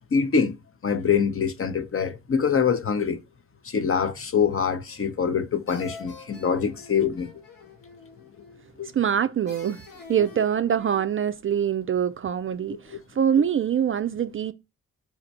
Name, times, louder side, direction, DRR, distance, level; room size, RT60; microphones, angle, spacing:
voice 1, 0.1-0.6 0.8-3.2 3.6-7.3 8.8-8.9 12.7-13.0 13.4-13.5, left 6 dB, 35° left, 0.7 m, -24 dB
sound 1, 4.9-5.4 5.7-8.7 9.5-11.3, left 4 dB, 65° left, 1.4 m, -47 dB
voice 2, 8.9-9.8 10.1-14.5, right 9 dB, 35° right, 0.4 m, -24 dB
4.3 x 2.4 x 4.5 m
hypercardioid pair, 45°, 36 cm